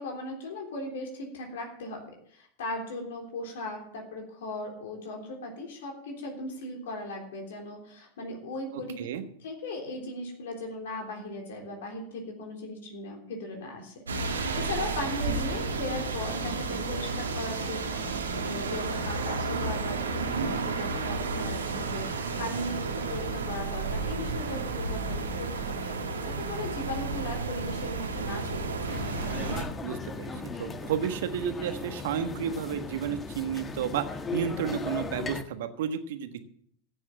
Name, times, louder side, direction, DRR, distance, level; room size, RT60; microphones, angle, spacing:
voice 1, 0.0-2.0 2.3-9.1 9.4-28.9, left 2 dB, 70° left, 1 dB, 3.5 m, -38 dB
voice 2, 8.7-9.2 20.3-20.6 29.8-30.3 30.6-34.0 34.3-36.4, right 8 dB, 65° right, 9 dB, 1.4 m, -32 dB
sound 1, 14.1-29.6, right 3 dB, 85° right, 2.1 m, -32 dB
sound 2, 28.9-35.4, left 4 dB, 20° left, 1.3 m, -37 dB
15.0 x 7.2 x 7.4 m, 0.64 s
hypercardioid pair, 90°, 0 cm